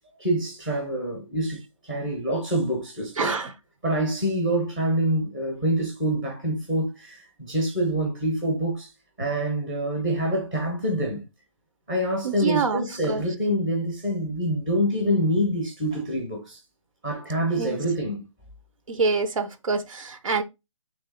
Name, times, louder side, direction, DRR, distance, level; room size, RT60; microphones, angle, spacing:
voice 1, 0.2-3.4 3.8-8.9 9.2-11.2 11.9-16.6 17.0-18.2, right 1 dB, 5° right, 0.5 m, -26 dB
voice 2, 3.2-3.5 12.2-13.2 17.6-17.8 18.9-20.4, right 4 dB, 85° right, 0.7 m, -26 dB
3.2 x 3.1 x 3.7 m
hypercardioid pair, 170°, 16 cm